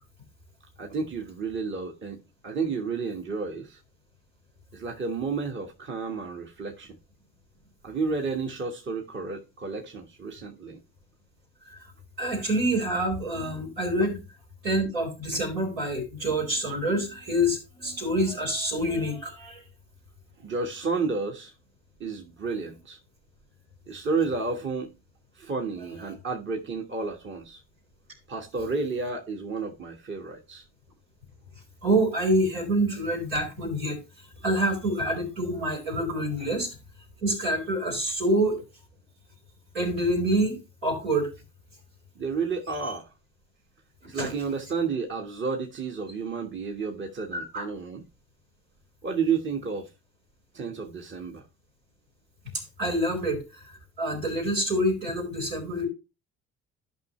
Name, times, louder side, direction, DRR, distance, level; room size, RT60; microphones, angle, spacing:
voice 1, 0.8-3.8 4.7-7.0 7.8-10.8 14.0-14.1 20.4-21.5 22.0-23.0 23.9-24.9 25.3-27.6 28.3-30.6 42.1-43.1 44.0-48.0 49.0-49.9 50.5-51.5, right 4 dB, 35° right, 1.5 m, -31 dB
voice 2, 12.2-14.2 14.6-19.6 31.8-34.0 34.4-36.8 37.2-38.6 39.7-40.6 40.8-41.3 44.1-44.3 47.3-47.6 52.5-55.9, right 1 dB, 80° right, 4.4 m, -27 dB
13.0 x 5.7 x 3.1 m
hypercardioid pair, 50°, 34 cm